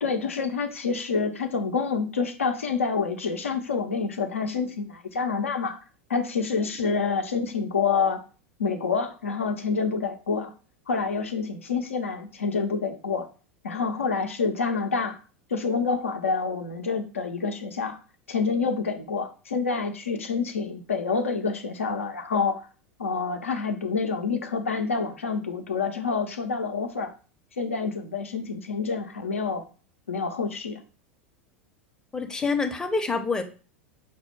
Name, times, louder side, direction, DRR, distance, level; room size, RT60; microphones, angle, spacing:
voice 1, 0.0-5.8 6.1-8.2 8.6-10.5 10.9-13.3 13.6-15.2 15.5-18.0 18.3-22.6 23.0-27.1 27.6-29.6 30.1-30.8, left 5 dB, 75° left, 6 dB, 0.5 m, -27 dB
voice 2, 32.1-33.4, left 4 dB, 10° left, 5 dB, 0.6 m, -26 dB
5.8 x 2.1 x 3.2 m, 0.36 s
figure-of-eight pair, 85°, 7 cm